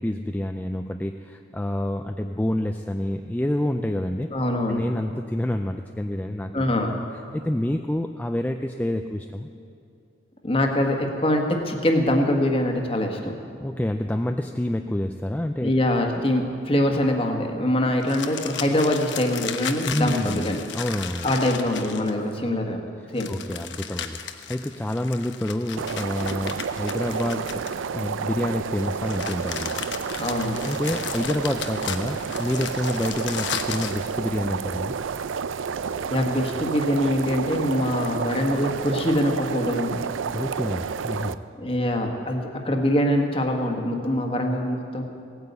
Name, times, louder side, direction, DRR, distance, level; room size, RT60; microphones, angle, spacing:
voice 1, 0.0-4.3 4.7-7.0 7.3-9.5 13.6-15.7 19.9-21.3 23.3-27.6 27.9-29.8 30.6-35.0 40.3-41.4, left 1 dB, 10° left, 6 dB, 0.3 m, -28 dB
voice 2, 4.3-4.8 6.5-6.9 10.4-13.3 15.6-20.6 21.2-22.8 23.1-23.3 30.2-30.6 36.1-40.1 41.6-45.0, left 1 dB, 30° left, 3 dB, 1.4 m, -23 dB
sound 1, 18.0-22.3 23.2-28.1 28.8-34.0, left 8 dB, 70° left, 0.9 m, -35 dB
sound 2, 25.8-41.3, right 6 dB, 90° right, 0.4 m, -30 dB
17.0 x 9.5 x 8.1 m, 2.5 s
head